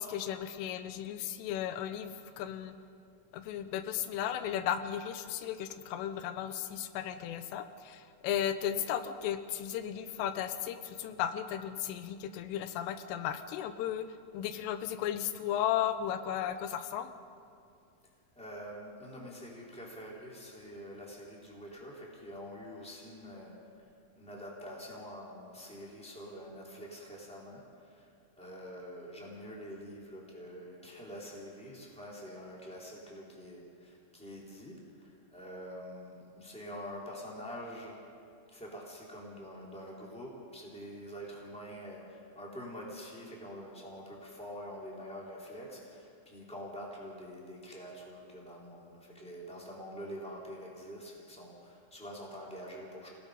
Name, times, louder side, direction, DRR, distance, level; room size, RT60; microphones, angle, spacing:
voice 1, 0.0-2.8 3.3-14.1 14.3-17.1, left 10 dB, 90° left, 10 dB, 3.5 m, -35 dB
voice 2, 18.3-23.5 24.2-28.1 28.4-38.0 38.5-53.1, equal, ahead, -4 dB, 3.3 m, -46 dB
29.5 x 18.0 x 5.3 m, 2.4 s
omnidirectional pair, 5.6 m